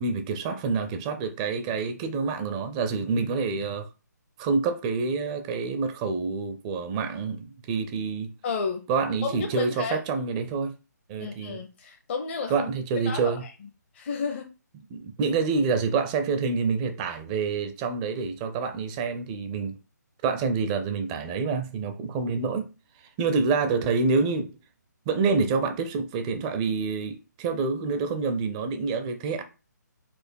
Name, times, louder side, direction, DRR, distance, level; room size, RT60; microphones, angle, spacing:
voice 1, 0.0-3.9 4.4-8.3 8.9-10.7 11.1-11.6 12.5-13.4 14.9-19.8 20.2-22.7 23.2-24.5 25.1-29.4, right 4 dB, 20° right, 0.5 m, -27 dB
voice 2, 8.4-8.8 9.2-10.0 11.2-12.7 13.0-13.5 13.9-14.5, left 5 dB, 40° left, 0.6 m, -32 dB
4.3 x 2.5 x 4.5 m
figure-of-eight pair, 145°, 10 cm